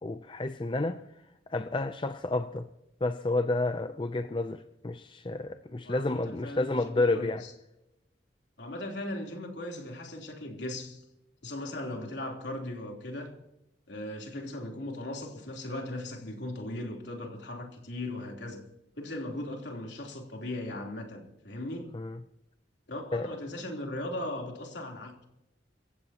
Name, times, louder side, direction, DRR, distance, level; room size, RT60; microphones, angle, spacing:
voice 1, 0.0-1.0 1.5-2.7 3.0-7.4 21.9-22.2 23.1-23.3, left 2 dB, 25° left, 0.5 m, -30 dB
voice 2, 5.8-7.5 8.6-11.0 11.4-13.3 13.9-18.6 19.0-21.9 22.9-25.2, left 1 dB, 70° left, 3.4 m, -38 dB
25.0 x 15.5 x 2.9 m
head